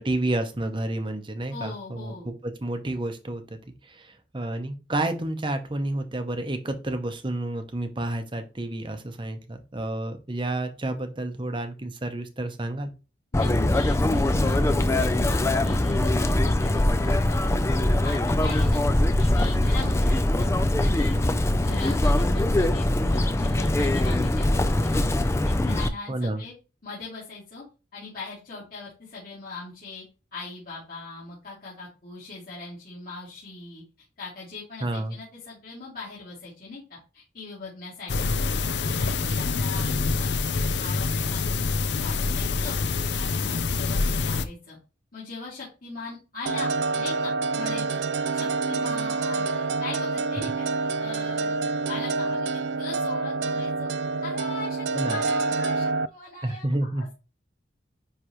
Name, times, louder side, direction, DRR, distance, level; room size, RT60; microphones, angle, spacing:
voice 1, 0.0-12.9 26.1-26.4 34.8-35.2 54.9-55.2 56.4-57.1, right 1 dB, 25° right, 7 dB, 0.8 m, -30 dB
voice 2, 1.5-2.3 13.3-17.6 18.0-18.8 19.2-20.5 20.8-25.0 25.4-26.5 26.8-27.6 27.9-30.0 30.3-33.8 34.2-38.3 38.8-40.3 40.8-41.6 41.9-42.8 43.2-44.8 45.1-46.7 47.0-48.1 48.3-53.9 54.2-57.1, left 3 dB, 50° left, -8 dB, 2.4 m, -40 dB
Chirp tweet, 13.3-25.9, left 1 dB, 15° left, 0.4 m, -22 dB
sound 1, 38.1-44.4, left 4 dB, 70° left, 0.5 m, -26 dB
sound 2, 46.5-56.1, right 3 dB, 65° right, 0.3 m, -27 dB
9.8 x 3.3 x 3.0 m, 0.32 s
head